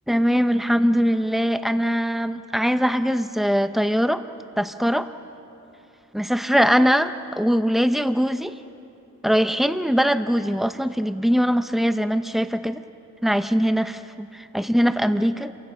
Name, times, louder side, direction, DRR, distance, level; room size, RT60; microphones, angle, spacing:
voice 1, 0.1-4.2 4.6-5.1 6.1-8.6 9.2-12.8 13.2-15.5, equal, ahead, 9 dB, 0.6 m, -21 dB
29.5 x 23.5 x 5.7 m, 2.9 s
head